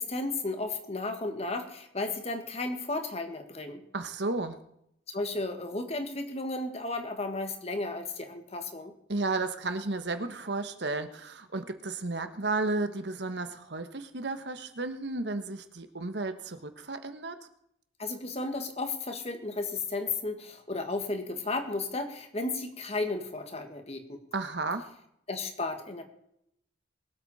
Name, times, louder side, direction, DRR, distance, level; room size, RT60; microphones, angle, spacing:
voice 1, 0.0-3.8 5.1-8.9 18.0-24.2 25.3-26.0, left 2 dB, 35° left, 6 dB, 1.7 m, -34 dB
voice 2, 3.9-4.6 9.1-17.4 24.3-24.8, right 3 dB, 65° right, 9 dB, 1.3 m, -33 dB
22.5 x 8.2 x 4.2 m, 0.76 s
head